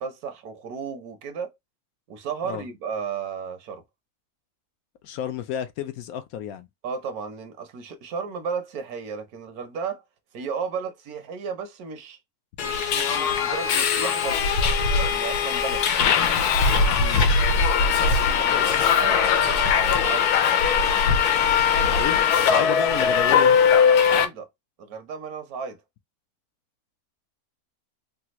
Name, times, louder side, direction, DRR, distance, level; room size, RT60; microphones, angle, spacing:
voice 1, 0.0-1.5 2.1-3.8 6.8-10.0 10.3-12.2 12.6-14.5 15.1-15.8 17.8-20.3 23.9-24.5 24.8-25.8, right 6 dB, 75° right, 1.2 m, -34 dB
voice 2, 5.0-6.7 17.0-17.3 21.8-23.6, left 9 dB, 70° left, 1.0 m, -31 dB
Subway metro underground, 12.6-24.2, left 6 dB, 90° left, 1.2 m, -20 dB
3.4 x 2.3 x 2.9 m
omnidirectional pair, 1.6 m